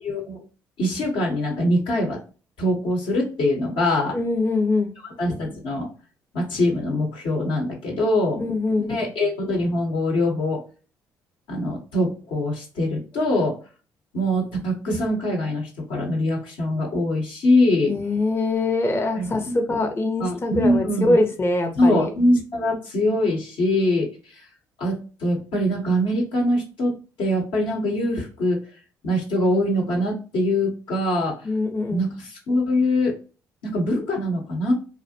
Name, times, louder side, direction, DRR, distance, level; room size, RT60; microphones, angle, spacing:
voice 1, 0.0-0.4 0.8-2.2 2.6-4.2 5.2-5.9 6.3-8.4 8.8-10.6 11.5-13.6 14.1-17.9 19.1-19.3 20.2-21.2 21.7-24.1 24.8-28.6 29.0-31.4 31.9-33.1 33.6-34.7, left 1 dB, 70° left, 0 dB, 1.0 m, -23 dB
voice 2, 4.1-4.9 8.4-8.9 13.3-13.4 17.9-22.1 31.4-32.1, left 2 dB, 25° left, 4 dB, 0.6 m, -23 dB
2.5 x 2.1 x 2.7 m, 0.35 s
hypercardioid pair, 55°, 9 cm